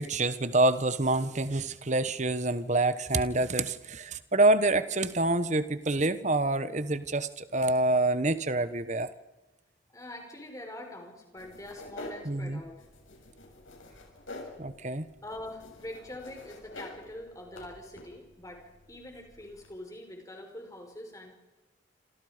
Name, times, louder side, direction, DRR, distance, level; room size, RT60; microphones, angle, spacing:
voice 1, 0.0-9.1 12.2-12.6 14.6-15.1, right 2 dB, 35° right, 13 dB, 1.2 m, -27 dB
voice 2, 9.9-12.7 14.3-14.4 15.2-21.4, left 1 dB, 15° left, 3 dB, 5.1 m, -44 dB
sound 1, 11.4-19.8, left 2 dB, 85° left, 6.7 m, -48 dB
28.0 x 27.5 x 5.2 m, 1.1 s
head